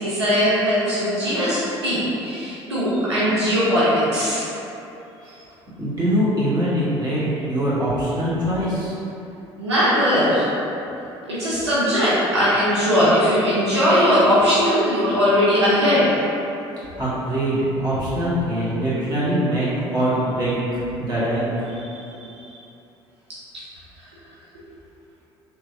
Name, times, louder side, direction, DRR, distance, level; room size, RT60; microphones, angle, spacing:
voice 1, 0.0-4.5 9.6-10.5 11.3-16.0 21.7-22.6, equal, 85° right, -10 dB, 0.6 m, -19 dB
voice 2, 5.8-8.9 17.0-19.7 19.9-20.6 21.0-21.5, right 1 dB, 30° right, -10 dB, 1.4 m, -22 dB
3.4 x 3.3 x 2.6 m, 2.9 s
figure-of-eight pair, 55°, 14 cm